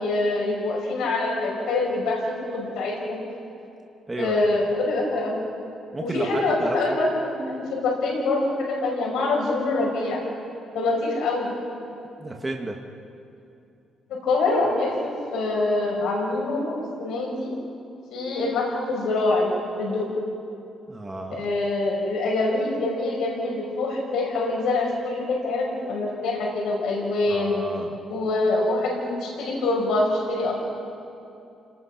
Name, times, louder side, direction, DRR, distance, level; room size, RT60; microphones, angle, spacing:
voice 1, 0.0-2.2 2.5-3.2 4.2-5.4 6.1-10.2 10.7-11.5 14.2-17.5 18.1-19.5 19.8-20.1 21.3-27.6 28.1-30.5, left 2 dB, 85° left, -2 dB, 5.6 m, -25 dB
voice 2, 4.1-4.6 5.9-7.0 12.2-12.8 20.9-21.5 27.3-28.0, right 2 dB, 15° right, 1 dB, 1.8 m, -32 dB
29.5 x 19.5 x 6.0 m, 2.7 s
cardioid pair, 115°, 0 cm